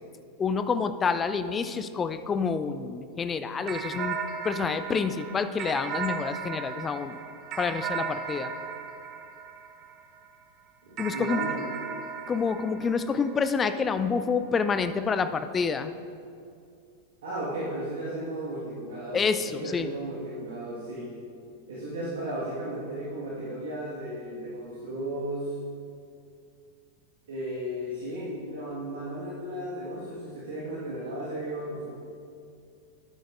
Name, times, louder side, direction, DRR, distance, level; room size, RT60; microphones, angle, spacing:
voice 1, 0.4-4.2 4.4-7.2 7.6-8.5 11.0-11.4 12.3-15.9 19.1-19.9, left 5 dB, 20° left, 11 dB, 0.4 m, -28 dB
sound 1, 3.7-10.3 11.0-13.7, right 6 dB, 35° right, 0.7 m, -36 dB
voice 2, 10.8-11.8 17.2-21.2 21.7-25.5 27.3-31.9, right 1 dB, 60° right, -7 dB, 1.5 m, -35 dB
13.0 x 9.2 x 2.5 m, 2.5 s
figure-of-eight pair, 90°, 0 cm